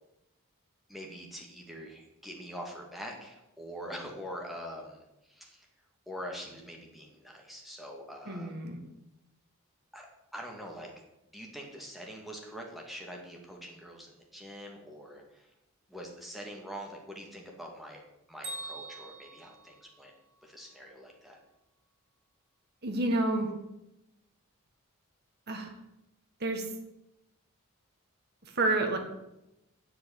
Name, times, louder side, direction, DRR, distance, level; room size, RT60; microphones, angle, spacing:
voice 1, 0.9-5.7 6.1-8.5 9.9-10.1 10.3-10.9 11.3-15.5 15.9-18.0 18.3-20.1 20.4-21.4, equal, ahead, 0 dB, 2.0 m, -44 dB
voice 2, 8.3-8.8 22.8-23.5 25.5-25.7 26.4-26.7 28.4-29.0, right 2 dB, 45° right, 3 dB, 1.7 m, -29 dB
Bell, 18.4-20.5, right 2 dB, 75° right, 4.8 m, -44 dB
8.2 x 7.7 x 8.2 m, 0.90 s
head